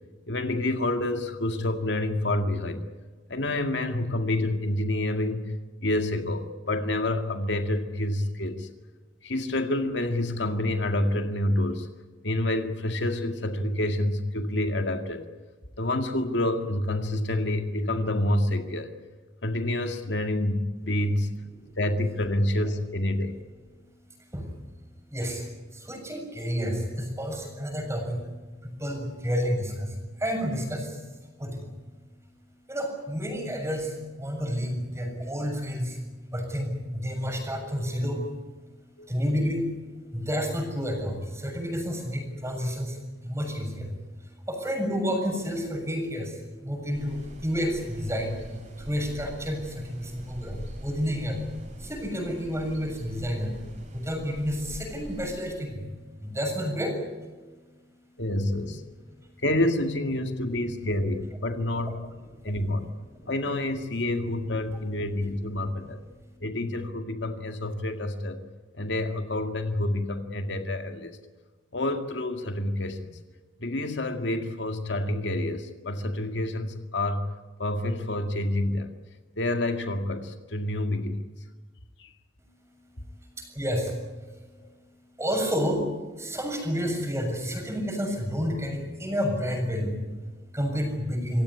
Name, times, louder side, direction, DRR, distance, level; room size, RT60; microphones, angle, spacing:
voice 1, 0.3-2.8 3.3-5.6 5.8-8.7 9.2-11.9 12.2-15.3 15.8-18.9 19.4-21.3 21.8-23.3 39.0-39.1 58.2-58.8 59.4-62.1 62.4-62.9 63.3-66.0 66.4-68.4 68.8-71.2 71.7-73.1 73.6-77.3 77.6-78.9 79.4-81.2 82.0-82.1 84.6-84.7, left 1 dB, 75° left, 6 dB, 2.1 m, -28 dB
voice 2, 24.1-24.6 25.1-28.3 28.6-31.7 32.7-58.2 59.1-59.4 66.2-66.4 82.4-91.4, equal, 15° right, 3 dB, 7.0 m, -31 dB
sound 1, 46.9-55.3, equal, 45° right, 7.4 m, -44 dB
26.5 x 17.0 x 9.8 m, 1.3 s
head